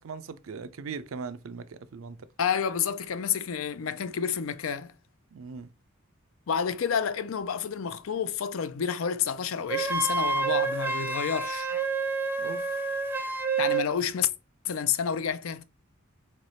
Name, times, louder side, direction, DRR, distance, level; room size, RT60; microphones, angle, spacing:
voice 1, 0.0-2.3 5.3-5.7 12.4-12.8, right 5 dB, 75° right, 0.5 m, -39 dB
voice 2, 2.4-4.9 6.5-11.7 13.6-14.3 14.6-15.6, left 7 dB, 75° left, 0.5 m, -29 dB
Wind instrument woodwind instrument, 9.7-13.9, right 4 dB, 10° right, 0.5 m, -28 dB
3.9 x 3.3 x 4.1 m
head